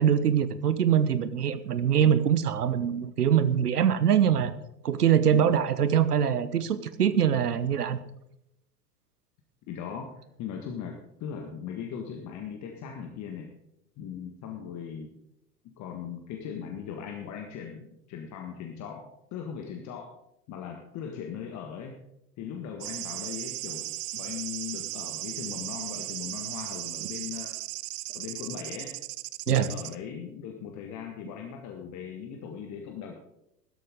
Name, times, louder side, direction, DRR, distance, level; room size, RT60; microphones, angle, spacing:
voice 1, 0.0-4.5 4.8-8.0 29.5-29.7, right 9 dB, 75° right, 15 dB, 1.1 m, -23 dB
voice 2, 5.3-5.6 9.7-13.5 14.0-15.1 15.8-19.1 19.3-20.1 20.5-22.0 22.4-27.6 28.1-28.9 29.5-33.1, left 8 dB, 35° left, 3 dB, 1.7 m, -39 dB
sound 1, 22.8-30.0, right 20 dB, 30° right, 0.4 m, -36 dB
16.0 x 13.0 x 3.8 m, 0.82 s
figure-of-eight pair, 85°, 47 cm